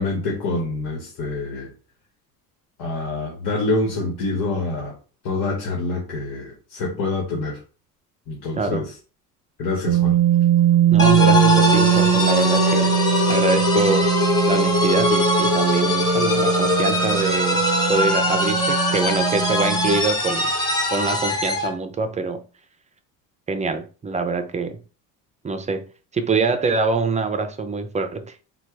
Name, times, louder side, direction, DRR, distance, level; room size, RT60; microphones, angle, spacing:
voice 1, 0.0-1.7 2.8-4.9 5.2-7.6 8.3-8.8 9.6-10.2, left 2 dB, 85° left, 1.5 m, -26 dB
voice 2, 8.6-8.9 10.9-12.9 13.3-14.1 14.5-17.6 17.9-20.5 20.9-22.4 23.5-24.8 25.4-25.9 26.1-28.4, right 3 dB, 20° right, 0.5 m, -24 dB
sound 1, 9.9-20.0, right 10 dB, 70° right, 0.6 m, -21 dB
sound 2, 11.0-21.7, left 2 dB, 10° left, 0.9 m, -21 dB
4.3 x 2.4 x 4.6 m
cardioid pair, 130°, 37 cm